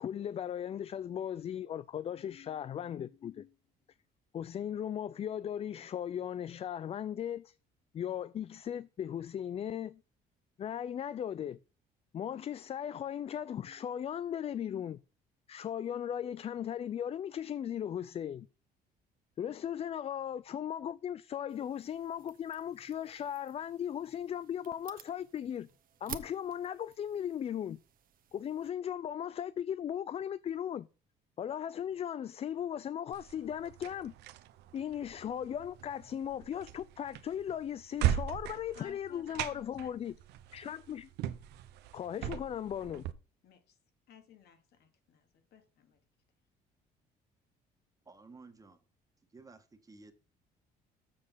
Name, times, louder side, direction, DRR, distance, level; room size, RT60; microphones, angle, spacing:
voice 1, 0.0-3.5 4.3-7.5 7.9-10.0 10.6-11.6 12.1-15.0 15.5-18.5 19.4-25.7 26.0-27.8 28.3-30.9 31.4-34.1 34.7-40.1 40.5-41.1 41.9-43.1, left 9 dB, 35° left, 0.4 m, -37 dB
sound 1, 21.5-28.7, right 9 dB, 55° right, 1.1 m, -52 dB
sound 2, 33.1-43.1, right 11 dB, 85° right, 0.8 m, -39 dB
voice 2, 38.7-40.2 43.4-43.8 44.1-46.0, left 7 dB, 70° left, 2.3 m, -58 dB
voice 3, 48.0-48.8 49.3-50.1, right 3 dB, 20° right, 1.5 m, -54 dB
7.5 x 6.4 x 5.7 m
cardioid pair, 110°, 17 cm